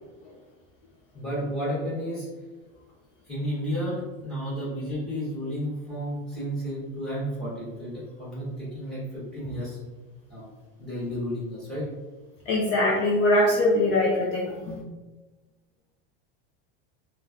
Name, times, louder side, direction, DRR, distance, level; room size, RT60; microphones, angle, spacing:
voice 1, 1.1-2.3 3.3-9.8 10.3-10.5 10.8-11.9, equal, ahead, -9 dB, 1.2 m, -32 dB
voice 2, 12.5-14.8, left 1 dB, 40° left, -4 dB, 0.4 m, -22 dB
3.1 x 2.2 x 2.4 m, 1.2 s
supercardioid pair, 165°, 29 cm